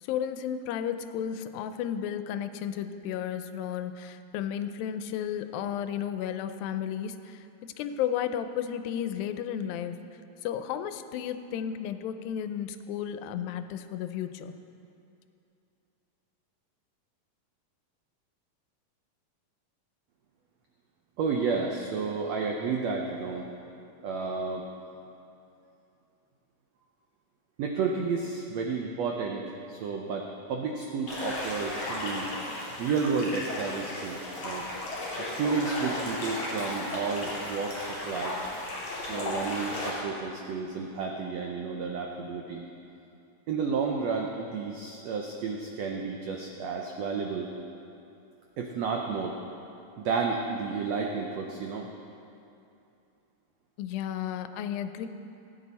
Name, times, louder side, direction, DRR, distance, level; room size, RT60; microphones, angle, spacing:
voice 1, 0.1-7.5 7.8-10.0 10.4-14.5 53.8-55.1, left 9 dB, 90° left, 10 dB, 2.4 m, -33 dB
voice 2, 21.2-23.5 24.0-24.6 27.6-32.3 32.7-34.6 35.2-38.3 39.1-42.7 43.5-47.5 48.6-49.4 50.0-51.9, right 5 dB, 85° right, 1 dB, 1.5 m, -31 dB
sound 1, 31.1-39.9, left 1 dB, 45° left, 4.6 m, -35 dB
18.0 x 9.4 x 4.2 m, 2.7 s
omnidirectional pair, 4.0 m